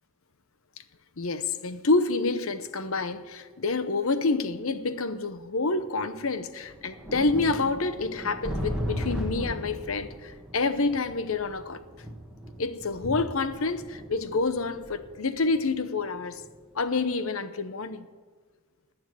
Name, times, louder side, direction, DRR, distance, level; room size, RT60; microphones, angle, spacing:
voice 1, 1.2-11.8 12.6-16.4 16.7-18.1, left 3 dB, 75° left, 0.9 m, -28 dB
sound 1, 3.0-3.1 4.1-4.2 5.4-5.5 5.8-5.9 6.4-16.5 16.9-17.0, equal, 5° right, 1.9 m, -37 dB
19.5 x 7.1 x 8.0 m
head